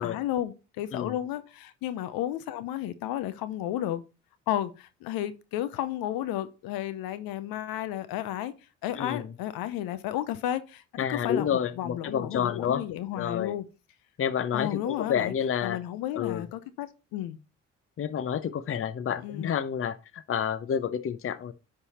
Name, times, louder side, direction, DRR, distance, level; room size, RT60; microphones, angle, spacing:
voice 1, 0.0-4.0 4.5-8.5 8.8-13.6 14.5-15.3 15.6-17.4 19.2-19.5, left 12 dB, 75° left, 0.7 m, -33 dB
voice 2, 8.9-9.3 11.0-12.8 13.1-13.6 14.2-15.8 16.1-16.4 18.0-21.5, left 8 dB, 35° left, 0.7 m, -29 dB
9.7 x 3.7 x 4.2 m
hypercardioid pair, 55°, 36 cm